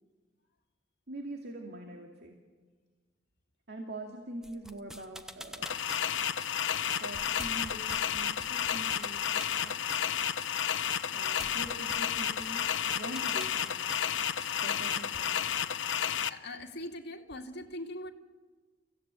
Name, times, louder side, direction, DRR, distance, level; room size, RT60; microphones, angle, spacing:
voice 1, 1.1-2.4 3.7-5.8 7.0-10.1 11.1-12.7 13.0-14.0 14.6-15.4, right 1 dB, 60° right, 2 dB, 2.3 m, -44 dB
sound 1, 4.4-15.2, equal, 5° right, 1.0 m, -48 dB
sound 2, 5.6-16.3, left 9 dB, 75° left, 0.8 m, -32 dB
voice 2, 16.3-18.1, left 1 dB, 60° left, 2 dB, 2.3 m, -41 dB
30.0 x 16.0 x 9.1 m, 1.4 s
head